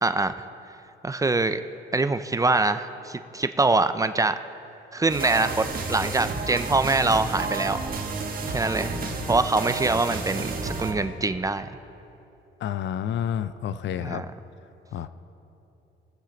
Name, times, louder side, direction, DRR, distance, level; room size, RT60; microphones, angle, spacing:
voice 1, 0.0-0.3 1.0-1.6 1.9-4.4 4.9-7.8 8.5-9.0 9.3-11.7 14.0-14.2, right 3 dB, 15° right, 10 dB, 0.4 m, -24 dB
sound 1, 5.1-10.9, right 3 dB, 45° right, 1.4 m, -31 dB
voice 2, 12.6-14.2 14.9-15.1, left 9 dB, 65° left, 13 dB, 0.5 m, -29 dB
21.0 x 7.3 x 3.9 m, 2.9 s
cardioid pair, 90°, 20 cm